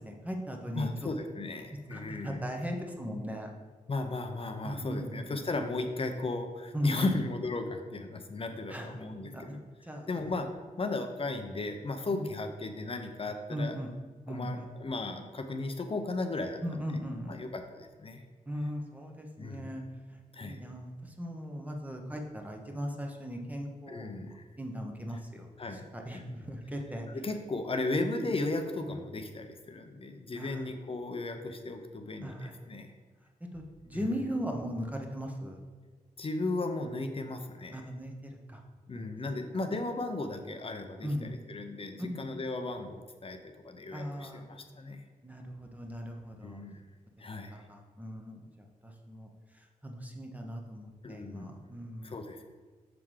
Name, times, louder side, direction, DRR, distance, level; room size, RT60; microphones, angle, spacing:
voice 1, 0.0-1.1 1.9-3.5 4.6-5.4 6.7-7.2 8.7-8.9 9.2-9.6 9.8-10.2 12.1-12.2 13.5-13.9 14.3-14.6 16.6-17.4 18.5-19.8 20.4-24.1 24.6-25.5 25.7-27.1 28.0-28.1 30.4-30.6 32.2-32.5 33.5-35.6 37.7-38.6 38.9-39.1 41.0-41.4 42.1-42.4 43.9-44.4 45.2-46.6 47.7-49.3 49.8-52.2, equal, 10° right, 2 dB, 1.0 m, -38 dB
voice 2, 0.7-2.4 3.9-9.6 10.1-10.5 10.8-13.8 14.3-16.6 17.3-18.2 19.4-19.7 20.3-20.6 23.9-24.5 25.6-26.3 27.1-32.9 33.9-34.1 36.2-37.9 38.9-45.0 46.4-46.8 47.2-47.5 51.0-51.7 52.0-52.5, left 2 dB, 40° left, 6 dB, 0.6 m, -36 dB
5.9 x 3.6 x 4.8 m, 1.5 s
cardioid pair, 60°, 15 cm